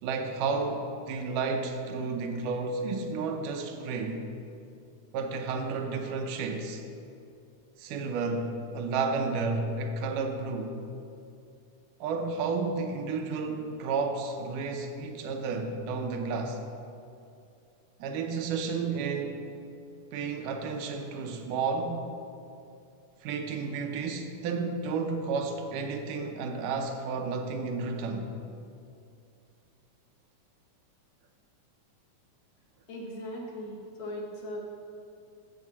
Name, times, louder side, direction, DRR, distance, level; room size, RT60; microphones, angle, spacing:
voice 1, 0.0-4.3 5.1-6.8 7.8-10.8 12.0-16.6 18.0-19.4 20.1-22.1 23.2-28.3, right 4 dB, 90° right, 5 dB, 2.4 m, -32 dB
voice 2, 32.9-34.6, left 1 dB, 60° left, -2 dB, 2.5 m, -38 dB
7.7 x 7.4 x 7.1 m, 2.6 s
omnidirectional pair, 3.6 m